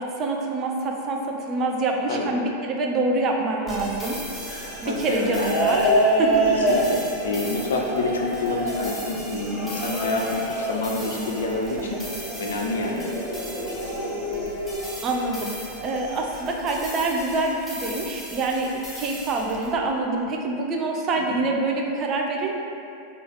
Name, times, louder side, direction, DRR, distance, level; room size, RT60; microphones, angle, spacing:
voice 1, 0.0-4.2 4.8-5.9 6.2-6.5 11.8-12.0 15.0-15.6 15.8-22.6, right 2 dB, 30° right, 1 dB, 0.4 m, -26 dB
sound 1, 3.7-14.9 15.7-16.4, right 1 dB, 35° left, 0.8 m, -27 dB
sound 2, 3.7-19.7, equal, 5° left, 0.7 m, -39 dB
voice 2, 4.8-5.6 6.5-12.0 12.4-13.0 21.2-21.4, left 2 dB, 65° left, 0 dB, 0.4 m, -28 dB
3.3 x 2.3 x 3.6 m, 2.7 s
figure-of-eight pair, 90°, 0 cm